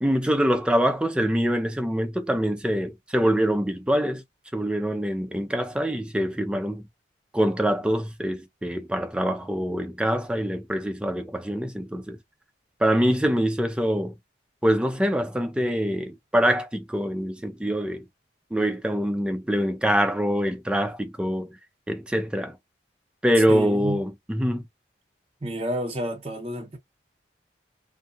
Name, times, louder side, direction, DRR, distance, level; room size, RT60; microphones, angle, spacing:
voice 1, 0.0-4.2 4.5-6.8 7.3-12.2 12.8-14.1 14.6-18.0 18.5-21.6 21.9-22.6 23.2-24.6, equal, 5° right, 0.4 m, -24 dB
voice 2, 23.5-24.0 25.4-26.8, equal, 30° right, 0.8 m, -30 dB
2.6 x 2.2 x 2.7 m
head